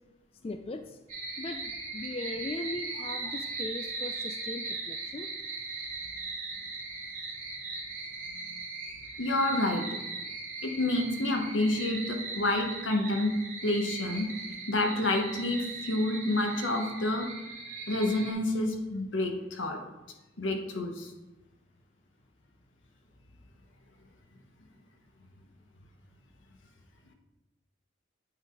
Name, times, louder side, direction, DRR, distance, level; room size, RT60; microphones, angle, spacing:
voice 1, 0.4-1.0 1.4-5.3, left 2 dB, 30° left, 7 dB, 0.3 m, -39 dB
sound 1, 1.1-18.3, right 3 dB, 40° right, 2.3 m, -39 dB
voice 2, 9.2-9.9 10.6-14.3 14.7-17.3 17.9-19.8 20.4-21.1, left 1 dB, 85° left, 3 dB, 1.2 m, -29 dB
8.9 x 4.1 x 4.6 m, 1.0 s
head